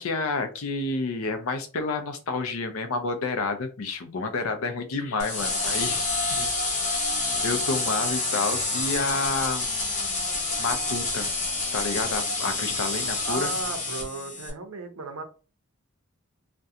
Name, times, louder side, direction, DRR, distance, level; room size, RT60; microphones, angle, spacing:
voice 1, 0.0-6.2 6.9-10.0 10.6-11.3 11.7-13.5, left 3 dB, 85° left, 7 dB, 0.5 m, -30 dB
sound 1, 5.2-14.5, left 3 dB, 35° left, 0.6 m, -28 dB
voice 2, 13.3-15.2, right 3 dB, 85° right, 7 dB, 0.6 m, -35 dB
2.4 x 2.2 x 2.7 m, 0.34 s
head